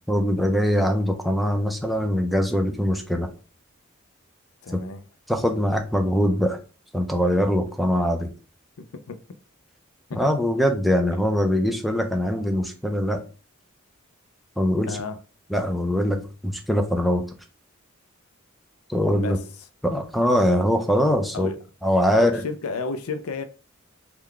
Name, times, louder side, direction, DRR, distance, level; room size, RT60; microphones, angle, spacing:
voice 1, 0.1-3.3 4.7-4.8 5.3-6.6 6.9-8.3 10.1-13.2 14.6-15.0 15.5-17.2 18.9-19.4 19.8-21.5 21.8-22.4, equal, ahead, 0.5 m, -22 dB
voice 2, 4.6-5.0 8.8-9.2 10.1-10.2 11.1-11.2 14.9-15.2 19.2-19.4 21.3-21.6 22.1-23.4, left 4 dB, 85° left, 0.5 m, -32 dB
3.7 x 2.3 x 3.2 m
head